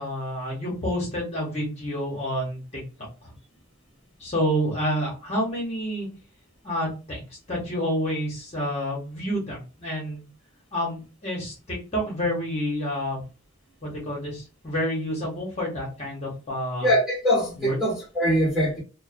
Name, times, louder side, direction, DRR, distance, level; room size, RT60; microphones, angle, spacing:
voice 1, 0.0-2.8 4.2-6.1 6.6-7.2 7.5-10.3 10.7-13.2 13.8-16.9 17.6-17.8, equal, 30° left, 0.9 m, -29 dB
voice 2, 16.8-18.8, equal, ahead, 1.0 m, -23 dB
2.5 x 2.1 x 2.4 m
head